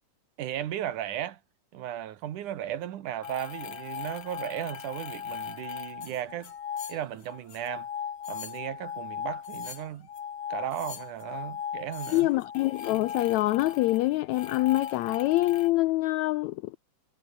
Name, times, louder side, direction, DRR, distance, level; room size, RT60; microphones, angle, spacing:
voice 1, 0.4-1.4 1.7-6.5 6.9-7.9 8.3-10.1 10.5-12.3, right 11 dB, 75° right, 2.8 m, -35 dB
sound 1, 3.2-15.7, left 8 dB, 50° left, 2.8 m, -38 dB
voice 2, 12.1-16.8, left 18 dB, 85° left, 1.6 m, -25 dB
omnidirectional pair, 3.8 m